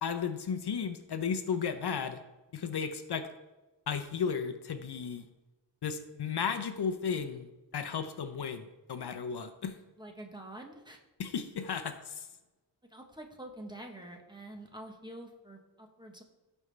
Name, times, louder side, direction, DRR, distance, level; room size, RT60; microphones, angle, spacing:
voice 1, 0.0-2.2 2.5-3.3 3.9-5.2 5.8-9.7 11.2-12.3, left 6 dB, 60° left, 8 dB, 0.7 m, -34 dB
voice 2, 10.0-11.0 12.9-16.2, right 1 dB, 10° right, 2 dB, 1.0 m, -47 dB
16.0 x 5.4 x 3.3 m, 1.1 s
wide cardioid pair, 165°, 44 cm